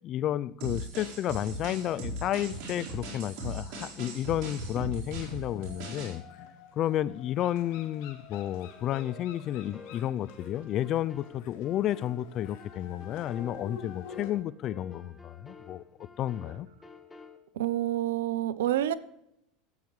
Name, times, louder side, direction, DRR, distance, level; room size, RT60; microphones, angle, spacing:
voice 1, 0.0-6.2 6.8-15.8 16.2-16.7, left 12 dB, 45° left, 0.5 m, -31 dB
sound 1, 0.6-6.2, right 1 dB, 60° right, 4.3 m, -38 dB
sound 2, 1.2-2.2 2.6-14.3, left 6 dB, 70° left, 1.8 m, -50 dB
sound 3, 8.6-17.4, left 5 dB, 15° left, 1.5 m, -51 dB
voice 2, 17.6-18.9, right 12 dB, 85° right, 0.6 m, -28 dB
13.5 x 8.7 x 3.2 m
supercardioid pair, 105°, 0 cm